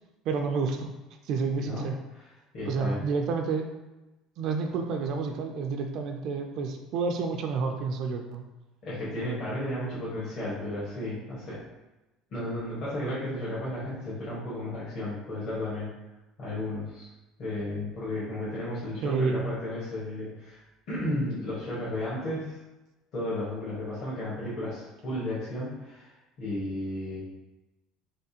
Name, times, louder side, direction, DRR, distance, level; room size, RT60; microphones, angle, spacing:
voice 1, 0.3-0.9 1.2-2.0 2.7-3.7 4.4-8.4 19.0-19.5, right 4 dB, 55° right, 4 dB, 0.4 m, -29 dB
voice 2, 2.5-3.0 8.8-11.6 12.3-15.9 16.4-17.1 17.4-20.6 20.9-22.6 23.1-27.2, left 1 dB, 50° left, -9 dB, 1.3 m, -33 dB
3.5 x 3.4 x 2.8 m, 1.0 s
cardioid pair, 140°, 0 cm